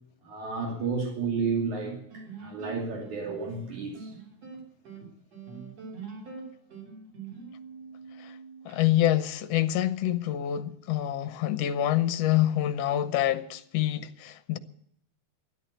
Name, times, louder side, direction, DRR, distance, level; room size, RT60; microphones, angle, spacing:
voice 1, 0.3-4.1, right 4 dB, 75° right, 3.9 m, -32 dB
sound 1, 1.8-8.8, right 5 dB, 60° right, 4.2 m, -44 dB
voice 2, 8.6-14.6, left 12 dB, 70° left, 1.7 m, -26 dB
13.5 x 11.5 x 8.1 m
omnidirectional pair, 3.4 m